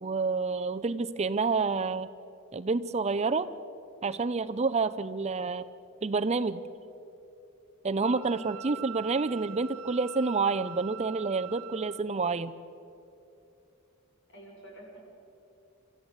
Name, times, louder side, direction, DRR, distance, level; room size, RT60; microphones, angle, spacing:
voice 1, 0.0-2.1 2.5-3.5 4.0-5.6 6.0-6.6 7.8-12.5, right 4 dB, 30° right, 12 dB, 0.6 m, -28 dB
voice 2, 8.0-8.8 9.2-9.5 14.3-15.0, equal, 60° left, -1 dB, 6.8 m, -49 dB
Wind instrument woodwind instrument, 8.0-12.0, right 11 dB, 80° right, 0.5 m, -44 dB
29.5 x 14.5 x 8.0 m, 2.8 s
head